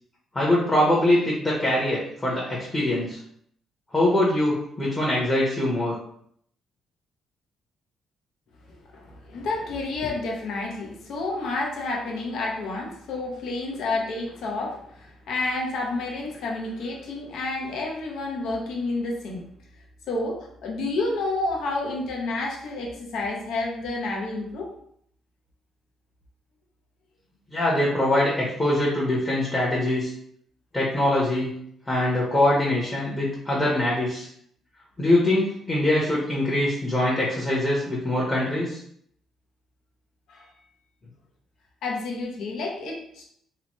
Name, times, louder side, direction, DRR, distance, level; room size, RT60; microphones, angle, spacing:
voice 1, 0.3-3.2 3.9-6.0 27.5-30.1 30.7-31.5 31.9-34.3 35.0-38.8, left 1 dB, 20° left, -5 dB, 0.9 m, -23 dB
voice 2, 8.7-19.5 20.1-24.7 40.3-40.5 41.8-43.2, left 2 dB, 75° left, -1 dB, 0.7 m, -30 dB
2.9 x 2.2 x 2.9 m, 0.67 s
cardioid pair, 90°, 0 cm